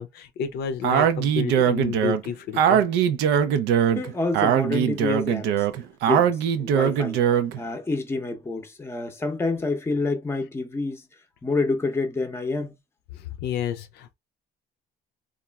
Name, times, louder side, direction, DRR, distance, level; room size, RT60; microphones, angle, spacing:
voice 1, 0.0-2.8 13.1-14.1, left 8 dB, 70° left, 0.5 m, -31 dB
Speech, 0.8-7.6, right 9 dB, 85° right, 0.5 m, -21 dB
voice 2, 4.0-5.6 6.1-6.3 6.6-7.2 7.6-11.0 11.4-12.8, left 3 dB, 15° left, 0.7 m, -27 dB
3.0 x 2.4 x 2.2 m
cardioid pair, 110°, 17 cm